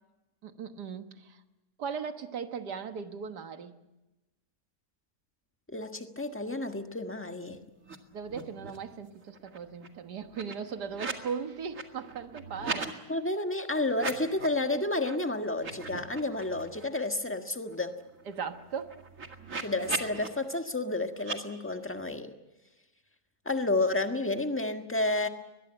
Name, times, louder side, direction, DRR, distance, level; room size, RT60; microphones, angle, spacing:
voice 1, 0.4-1.4 1.8-3.8 8.1-12.9 18.3-19.0, right 6 dB, 85° right, 8 dB, 2.0 m, -38 dB
voice 2, 5.7-7.6 13.1-18.0 19.6-22.3 23.4-25.3, left 2 dB, 10° left, 6 dB, 1.4 m, -31 dB
sound 1, 7.8-8.0 8.2-8.9 9.2-11.3 11.6-12.9 13.9-14.6 15.0-15.2 15.5-16.8 17.2-17.3 17.6-20.3 21.2-21.4, right 4 dB, 55° right, 2.4 m, -39 dB
21.5 x 21.5 x 8.9 m, 1.0 s
omnidirectional pair, 1.7 m